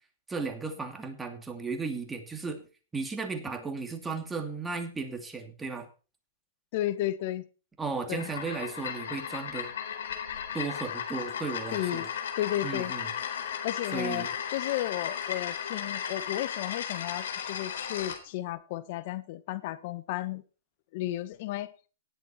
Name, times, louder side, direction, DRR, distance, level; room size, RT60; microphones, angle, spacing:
voice 1, 0.3-2.6 2.9-5.9 7.8-9.7 10.5-12.1 12.6-13.1 13.9-14.3, right 4 dB, 10° right, 5 dB, 2.6 m, -35 dB
voice 2, 6.7-7.4 8.1-8.3 11.7-12.1 12.4-12.9 13.6-20.4 20.9-21.7, left 14 dB, 50° left, 13 dB, 1.5 m, -33 dB
sound 1, 8.1-18.2, left 8 dB, 75° left, 4.0 m, -35 dB
18.0 x 8.3 x 4.5 m, 0.36 s
hypercardioid pair, 130°, 0 cm